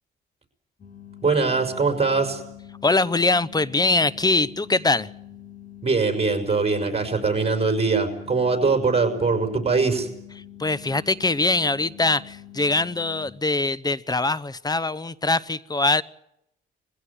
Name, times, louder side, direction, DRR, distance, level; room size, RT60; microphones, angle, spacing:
sound 1, 0.8-13.3, left 11 dB, 40° left, 5.4 m, -44 dB
voice 1, 1.2-2.4 5.8-10.1, right 4 dB, 30° right, 6 dB, 5.6 m, -22 dB
voice 2, 2.8-5.1 10.6-16.0, left 3 dB, 20° left, 19 dB, 0.8 m, -22 dB
21.5 x 16.0 x 9.7 m, 0.80 s
cardioid pair, 90°, 20 cm